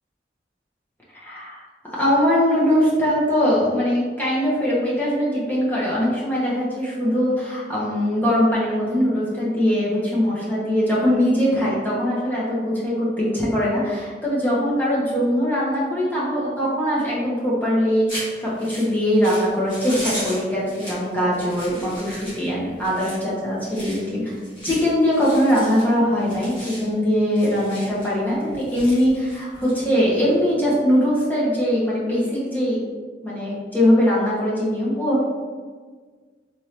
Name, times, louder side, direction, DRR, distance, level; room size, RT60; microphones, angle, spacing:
voice 1, 1.2-1.6 1.9-24.4 24.6-32.8 33.2-35.2, equal, 10° left, -8 dB, 0.9 m, -21 dB
sound 1, 18.1-30.4, equal, 30° left, 1.5 m, -37 dB
3.5 x 3.1 x 2.8 m, 1.5 s
head